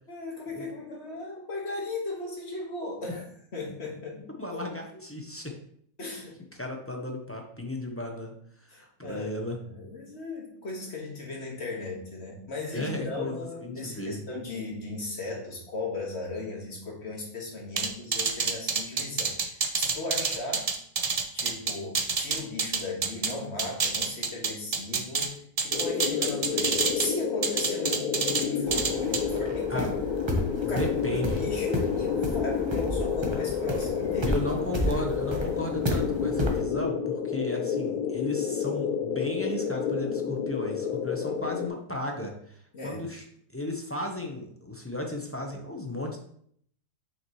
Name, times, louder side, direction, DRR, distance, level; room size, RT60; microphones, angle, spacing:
voice 1, 0.1-3.2 3.5-4.3 4.9-5.1 6.0-6.4 8.7-20.7 21.3-25.4 25.6-30.1 30.7-34.3 34.9-35.1 42.7-43.0, left 2 dB, 45° left, -1 dB, 1.8 m, -37 dB
voice 2, 4.4-5.5 6.6-8.3 8.6-9.6 12.7-14.2 29.7-29.9 30.6-31.4 34.2-43.2 43.5-46.2, left 1 dB, 15° left, 2 dB, 0.5 m, -35 dB
sound 1, 17.8-23.3 23.6-25.3 25.6-27.1 27.4-28.4 28.7-29.2, right 5 dB, 70° right, 0.3 m, -27 dB
sound 2, 25.7-41.7, left 7 dB, 85° left, 1.1 m, -30 dB
sound 3, 28.7-36.6, equal, 25° right, 0.7 m, -32 dB
5.9 x 5.9 x 3.1 m, 0.65 s
omnidirectional pair, 1.6 m